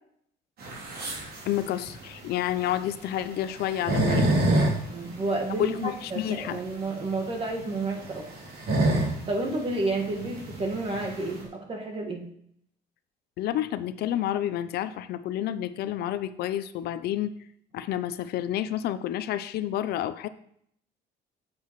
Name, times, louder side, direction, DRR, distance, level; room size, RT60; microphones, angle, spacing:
sound 1, 0.6-11.4, right 1 dB, 65° right, 2.9 m, -28 dB
voice 1, 1.5-4.4 5.6-6.6 13.4-17.3 17.7-20.3, left 12 dB, 70° left, 13 dB, 0.5 m, -29 dB
voice 2, 4.9-8.3 9.3-12.3, right 2 dB, 35° right, 2 dB, 1.6 m, -30 dB
8.4 x 7.8 x 3.1 m, 0.69 s
cardioid pair, 110°, 17 cm